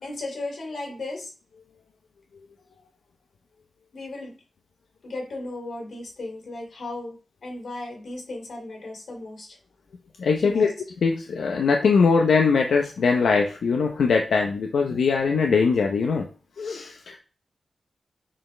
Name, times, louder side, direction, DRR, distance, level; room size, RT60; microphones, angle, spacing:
voice 1, 0.0-1.3 3.9-4.3 5.0-7.2 7.4-9.6 10.4-10.7, left 2 dB, 60° left, -1 dB, 2.7 m, -35 dB
voice 2, 10.2-10.7 11.0-16.3 16.6-17.2, left 5 dB, 85° left, 2 dB, 0.8 m, -21 dB
7.5 x 4.4 x 3.3 m, 0.37 s
wide cardioid pair, 150°, 0 cm